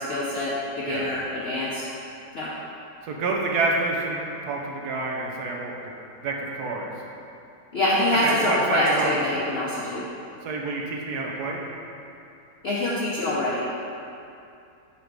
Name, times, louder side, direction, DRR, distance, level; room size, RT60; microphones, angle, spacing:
voice 1, 0.0-1.8 2.3-2.5 7.7-10.0 12.6-13.6, left 1 dB, 55° left, -7 dB, 0.7 m, -25 dB
voice 2, 3.1-5.9 6.2-6.9 8.2-9.2 10.4-11.7, right 3 dB, 80° right, 0 dB, 1.3 m, -27 dB
5.0 x 4.1 x 4.6 m, 2.6 s
omnidirectional pair, 1.7 m